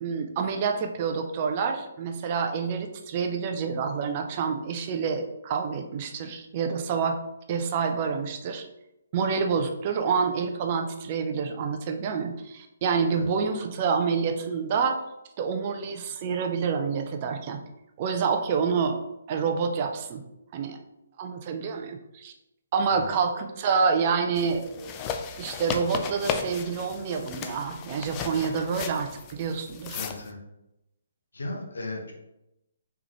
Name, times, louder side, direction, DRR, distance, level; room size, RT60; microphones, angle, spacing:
voice 1, 0.0-7.2 7.5-8.7 9.1-15.0 15.4-17.6 18.0-19.0 19.3-20.2 20.5-20.8 21.2-22.3 22.7-24.9 25.4-30.0, right 5 dB, 35° right, 5 dB, 0.5 m, -27 dB
sound 1, 24.4-30.3, left 7 dB, 25° left, 0.4 m, -35 dB
voice 2, 29.9-30.4 31.3-32.1, left 2 dB, 80° left, 2 dB, 0.9 m, -36 dB
3.7 x 3.4 x 3.0 m, 0.88 s
figure-of-eight pair, 140°, 0 cm